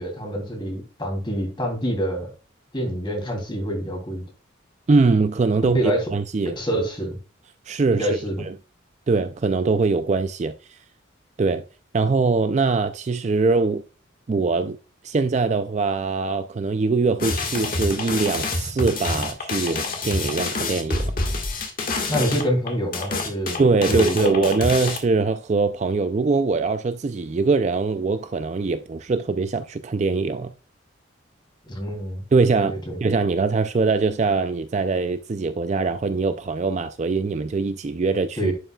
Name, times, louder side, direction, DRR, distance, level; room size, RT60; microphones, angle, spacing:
voice 1, 0.0-2.3 2.7-4.2 5.7-6.0 6.6-7.2 7.9-8.4 22.1-24.5 31.7-32.2 32.5-33.0 38.4-38.5, equal, 25° left, 2.9 m, -26 dB
voice 2, 4.9-6.6 7.7-8.5 9.1-10.5 11.4-11.6 11.9-13.8 14.3-14.8 15.0-21.1 23.6-30.5 32.3-38.5, right 4 dB, 35° right, 0.3 m, -22 dB
sound 1, 17.2-25.0, left 3 dB, 45° left, 1.6 m, -27 dB
11.0 x 5.6 x 2.3 m
head